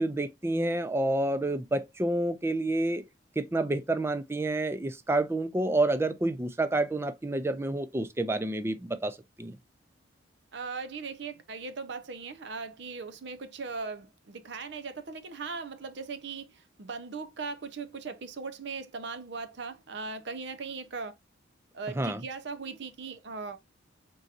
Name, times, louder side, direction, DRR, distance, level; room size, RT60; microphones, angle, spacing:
voice 1, 0.0-3.0 3.4-9.6 22.0-22.2, right 2 dB, 15° right, 0.3 m, -29 dB
voice 2, 10.5-21.1 21.7-23.6, right 4 dB, 65° right, 0.6 m, -39 dB
4.1 x 3.8 x 2.5 m
head